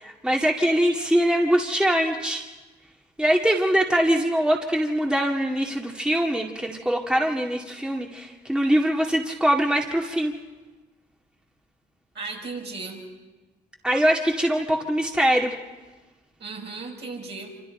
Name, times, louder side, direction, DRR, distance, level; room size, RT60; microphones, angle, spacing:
voice 1, 0.0-2.4 3.2-10.3 13.8-15.5, equal, 5° right, 0 dB, 2.1 m, -23 dB
voice 2, 12.1-13.0 16.4-17.6, right 3 dB, 60° right, -1 dB, 5.7 m, -35 dB
26.5 x 26.0 x 4.4 m, 1.2 s
supercardioid pair, 55°, 20 cm